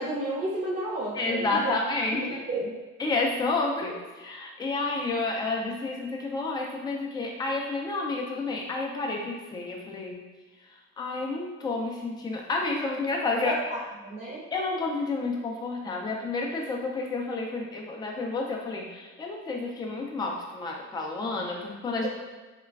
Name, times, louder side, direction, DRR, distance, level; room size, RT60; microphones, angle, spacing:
voice 1, 0.0-1.8 2.1-2.7 13.4-13.5 14.0-14.4, right 2 dB, 30° right, -6 dB, 0.7 m, -32 dB
voice 2, 1.1-2.4 3.0-10.2 10.6-13.6 14.5-22.1, left 3 dB, 15° left, 0 dB, 0.3 m, -30 dB
3.0 x 2.2 x 2.3 m, 1.3 s
cardioid pair, 100°, 32 cm